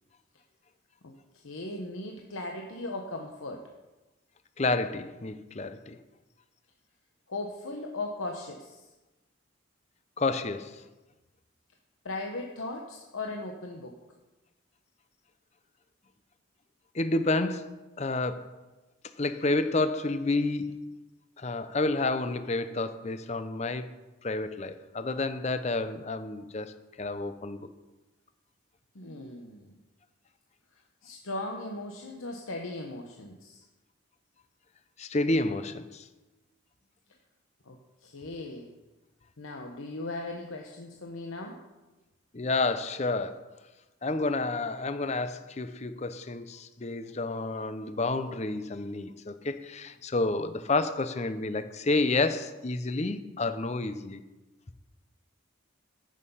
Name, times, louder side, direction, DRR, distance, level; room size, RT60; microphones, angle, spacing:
voice 1, 1.4-3.6 7.3-8.8 12.0-14.0 28.9-29.7 31.0-33.6 37.7-38.7 39.4-41.6, left 2 dB, 85° left, 1.0 m, -38 dB
voice 2, 4.6-6.0 10.2-10.8 16.9-18.5 19.2-20.9 21.4-23.9 24.2-27.7 35.0-36.1 42.3-43.4 44.0-54.2, left 2 dB, 35° left, 0.6 m, -30 dB
14.5 x 6.5 x 5.6 m
head